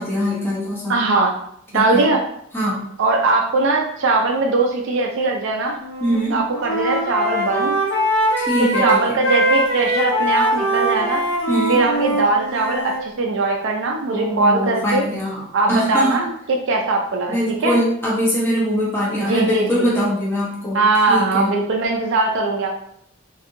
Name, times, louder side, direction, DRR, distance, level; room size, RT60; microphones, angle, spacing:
voice 1, 0.0-1.0 1.7-2.1 2.5-2.9 6.0-6.3 8.4-9.2 11.5-11.8 14.1-15.4 15.7-16.2 17.3-20.8 21.1-21.6, equal, 10° left, -6 dB, 0.7 m, -22 dB
voice 2, 0.9-1.4 1.7-2.2 3.0-5.8 6.3-7.8 8.6-11.2 11.7-15.1 15.5-17.8 19.3-19.9 20.7-22.7, right 3 dB, 65° right, 1 dB, 0.4 m, -20 dB
Wind instrument woodwind instrument, 5.8-6.2 6.5-13.0, right 1 dB, 85° left, 1.0 m, -21 dB
2.6 x 2.5 x 2.5 m, 0.71 s
head